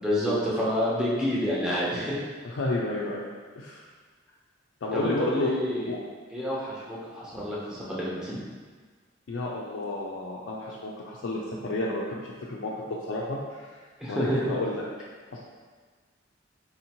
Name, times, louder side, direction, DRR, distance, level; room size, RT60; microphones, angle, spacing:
voice 1, 0.0-2.2 4.9-5.9 6.3-8.4 14.0-14.5, equal, 5° right, -7 dB, 0.8 m, -28 dB
voice 2, 2.4-3.8 4.8-5.5 5.9-6.0 9.3-13.7 14.1-14.8 15.3-15.4, left 2 dB, 90° left, -5 dB, 0.4 m, -31 dB
4.1 x 2.7 x 2.9 m, 1.5 s
head